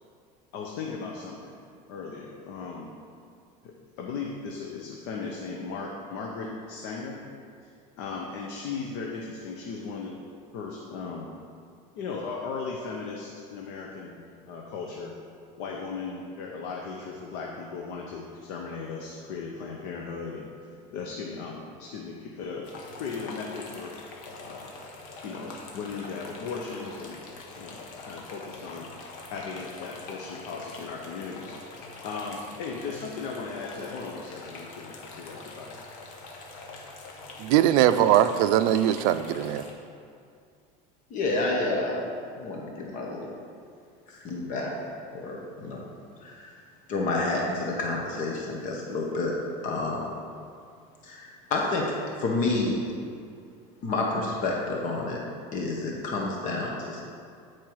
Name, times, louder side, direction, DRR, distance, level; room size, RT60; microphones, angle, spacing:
voice 1, 0.5-1.6 1.9-2.9 3.6-7.2 7.6-7.7 8.0-10.2 10.5-11.3 11.9-14.2 14.5-15.2 15.6-20.5 20.9-22.7 23.0-24.0 24.4-24.7 25.2-27.2 27.5-28.9 29.3-31.6 32.0-35.7, left 4 dB, 65° left, 0.9 m, -37 dB
sound 1, 22.6-39.7, left 3 dB, 80° left, 1.2 m, -44 dB
voice 2, 37.4-39.6, right 11 dB, 75° right, 0.4 m, -21 dB
voice 3, 41.1-42.0 42.4-43.3 44.1-44.7 45.1-45.8 46.2-46.5 46.9-49.4 49.6-50.1 51.0-52.8 53.8-55.2 55.5-57.0, left 2 dB, 45° left, 1.1 m, -29 dB
9.0 x 4.5 x 4.7 m
cardioid pair, 135°, 18 cm